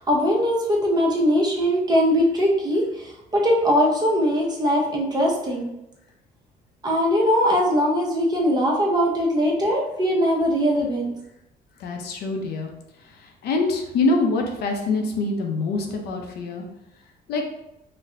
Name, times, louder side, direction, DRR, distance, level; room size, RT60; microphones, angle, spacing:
voice 1, 0.0-5.7 6.8-11.1, equal, 25° right, -2 dB, 0.8 m, -21 dB
voice 2, 11.8-12.7 13.1-16.6 17.3-17.4, left 3 dB, 70° left, 2 dB, 0.6 m, -25 dB
4.1 x 2.1 x 2.5 m, 0.87 s
cardioid pair, 110°, 17 cm